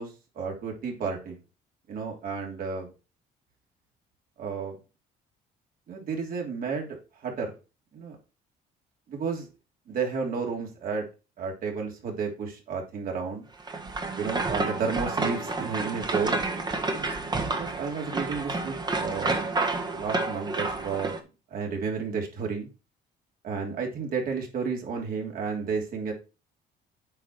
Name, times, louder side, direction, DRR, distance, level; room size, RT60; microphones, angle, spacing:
voice 1, 0.0-1.4 1.9-2.9 4.4-4.8 5.9-7.5 7.9-8.2 9.1-9.5 9.9-11.1 11.4-13.5 14.2-16.4 17.6-19.5 19.9-21.2 21.5-22.7 23.4-26.1, right 5 dB, 60° right, 1 dB, 3.1 m, -32 dB
sound 1, 13.6-21.2, right 3 dB, 25° right, 1.4 m, -30 dB
8.8 x 4.7 x 4.6 m, 0.31 s
cardioid pair, 110°, 17 cm